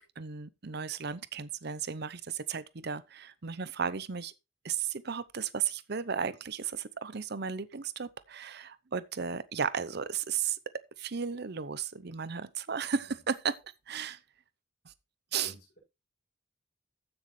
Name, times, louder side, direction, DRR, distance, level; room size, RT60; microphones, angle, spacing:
voice 1, 0.2-4.3 4.6-10.6 11.0-13.6 13.9-14.2 15.3-15.5, right 6 dB, 55° right, 0.8 m, -34 dB
voice 2, 12.9-13.2 15.4-15.8, equal, 55° left, 6.6 m, -53 dB
15.0 x 6.4 x 3.3 m
head